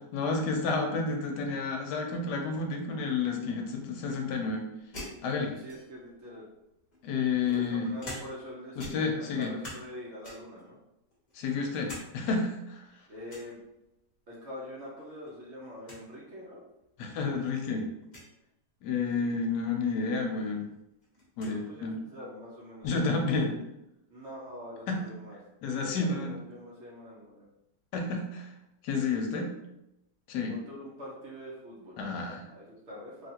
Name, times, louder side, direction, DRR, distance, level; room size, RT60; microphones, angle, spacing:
voice 1, 0.1-4.6 5.2-5.5 7.0-7.9 8.8-9.5 11.3-12.8 17.0-17.9 18.8-20.7 21.4-21.9 22.8-23.5 24.9-25.0 25.6-26.3 27.9-28.5 28.8-29.5 30.3-30.5 32.0-32.4, left 4 dB, 75° left, 3 dB, 1.1 m, -30 dB
sound 1, 4.9-6.1 6.9-8.5 8.8-9.9 10.2-10.6 11.1-12.1 12.4-12.5 13.3-13.5 15.0-15.3 15.6-15.7 15.8-16.0 16.8-16.9 18.0-18.3 20.0-20.1 20.4-21.6, left 1 dB, 35° left, 0.8 m, -45 dB
voice 2, 5.6-6.5 7.5-10.8 13.1-13.6 14.3-16.6 19.2-19.4 21.4-23.4 24.1-25.4 25.7-27.5 30.5-32.0 32.5-33.3, left 1 dB, 60° right, -5 dB, 0.8 m, -44 dB
3.3 x 2.4 x 2.8 m, 0.87 s
omnidirectional pair, 1.8 m